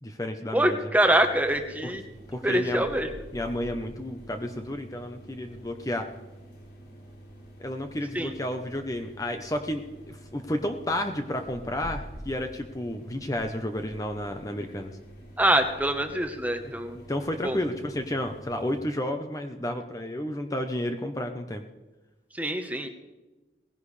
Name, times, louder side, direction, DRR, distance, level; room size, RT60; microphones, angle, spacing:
voice 1, 0.0-0.8 1.8-1.9 2.3-2.8 3.3-6.1 7.6-14.9 16.9-21.6, left 1 dB, 20° left, 5 dB, 0.8 m, -31 dB
voice 2, 0.5-2.0 2.4-3.1 8.1-8.3 15.4-17.0 17.4-17.6 22.3-22.9, right 1 dB, 10° right, 6 dB, 1.1 m, -24 dB
sound 1, 0.9-18.8, right 1 dB, 75° left, 5.8 m, -47 dB
19.0 x 16.0 x 3.3 m, 1.1 s
head